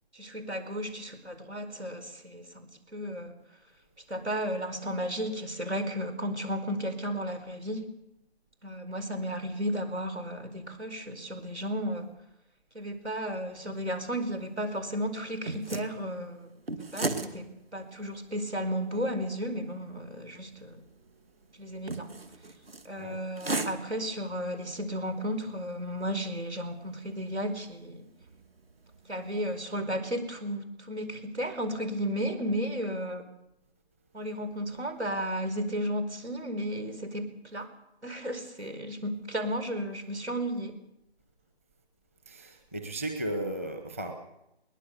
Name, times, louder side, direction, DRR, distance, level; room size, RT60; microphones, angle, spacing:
voice 1, 0.1-3.3 4.1-7.9 8.6-12.1 12.7-16.5 16.8-20.8 21.6-22.1 22.8-28.1 29.1-33.2 34.1-37.7 38.0-40.8, equal, 85° right, 9 dB, 5.0 m, -34 dB
sound 1, 13.8-29.6, right 2 dB, 60° right, 2.2 m, -41 dB
voice 2, 42.3-44.1, right 1 dB, 15° right, 5 dB, 1.0 m, -35 dB
22.0 x 19.5 x 6.9 m, 0.87 s
figure-of-eight pair, 170°, 33 cm